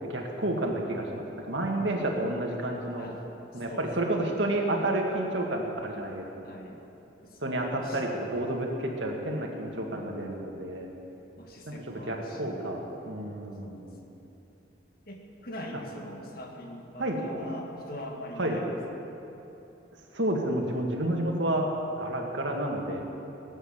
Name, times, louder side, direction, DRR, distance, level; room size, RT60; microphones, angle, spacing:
voice 1, 0.0-3.1 3.5-6.3 7.4-10.9 11.7-14.0 17.0-17.2 18.4-18.6 20.1-21.7 22.0-23.0, right 1 dB, 85° right, 1 dB, 2.1 m, -30 dB
voice 2, 3.5-4.2 6.4-6.8 7.2-8.0 9.7-10.5 11.4-12.8 13.6-13.9 15.1-18.7, equal, 50° left, 1 dB, 2.0 m, -43 dB
18.5 x 8.9 x 7.3 m, 2.9 s
head